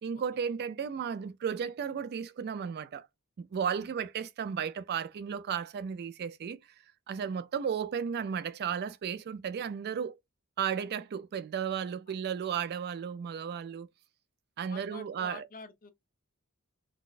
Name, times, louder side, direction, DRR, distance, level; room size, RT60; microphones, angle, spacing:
voice 1, 0.0-3.1 3.4-6.6 7.1-10.2 10.6-13.9 14.6-15.5, right 7 dB, 45° right, 0.3 m, -34 dB
voice 2, 14.7-15.9, left 5 dB, 40° left, 0.7 m, -48 dB
4.0 x 2.1 x 2.4 m
head